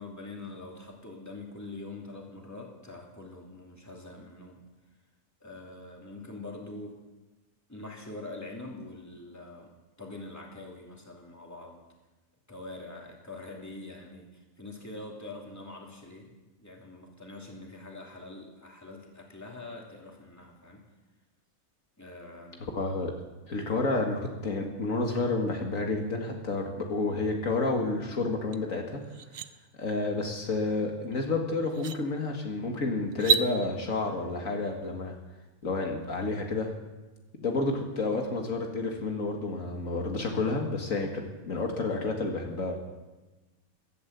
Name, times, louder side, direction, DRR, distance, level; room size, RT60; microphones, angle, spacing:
voice 1, 0.0-4.6 5.4-7.0 7.7-9.7 10.0-11.8 12.5-14.3 14.6-16.3 16.6-20.8 22.0-22.7, left 2 dB, 10° left, -1 dB, 2.8 m, -44 dB
voice 2, 22.7-23.1 23.5-29.0 29.8-35.1 35.6-36.7 37.4-42.8, left 3 dB, 70° left, 2 dB, 2.2 m, -30 dB
sound 1, 28.5-28.6 29.0-29.5 31.1-31.2 31.7-32.0 33.1-33.5, right 7 dB, 65° right, 1.0 m, -27 dB
14.5 x 12.0 x 8.2 m, 1.1 s
omnidirectional pair, 1.5 m